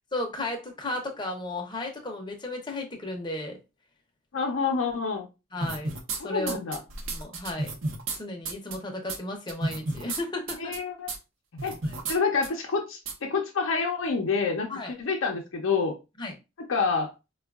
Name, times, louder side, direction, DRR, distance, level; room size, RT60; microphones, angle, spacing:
voice 1, 0.1-3.6 5.5-5.9 6.2-6.6 7.1-7.7 8.1-10.7 11.8-12.0 14.7-14.9 16.2-16.3, left 2 dB, 20° left, 0.6 m, -34 dB
voice 2, 4.3-5.3 6.2-6.8 10.6-11.1 11.6-11.7 12.1-15.9 16.7-17.1, left 5 dB, 80° left, 0.6 m, -27 dB
sound 1, 5.6-6.2 6.5-8.2 8.4-8.7 9.1-9.2 9.5-10.2 10.5-10.8 11.1-11.2 11.6-12.2 12.4-12.5 13.1-13.2, right 3 dB, 75° right, 0.7 m, -31 dB
4.4 x 2.3 x 2.3 m
head